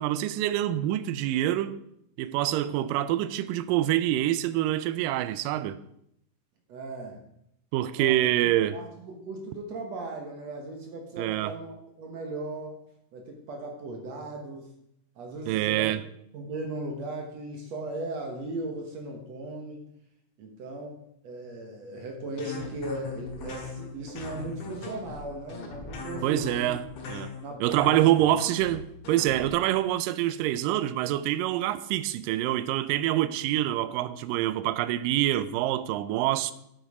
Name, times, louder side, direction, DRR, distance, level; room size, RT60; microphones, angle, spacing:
voice 1, 0.0-1.8 2.2-5.8 7.7-8.8 11.2-11.5 15.5-16.0 26.2-27.3 27.6-36.5, right 13 dB, 85° right, 2.2 m, -26 dB
voice 2, 6.7-7.2 8.0-8.2 8.7-12.8 13.1-14.7 15.2-16.0 16.3-19.9 20.4-26.7 27.4-28.0, right 2 dB, 60° right, 2.2 m, -37 dB
sound 1, 22.4-29.5, left 4 dB, 55° left, 2.3 m, -39 dB
9.6 x 8.0 x 4.8 m
omnidirectional pair, 3.9 m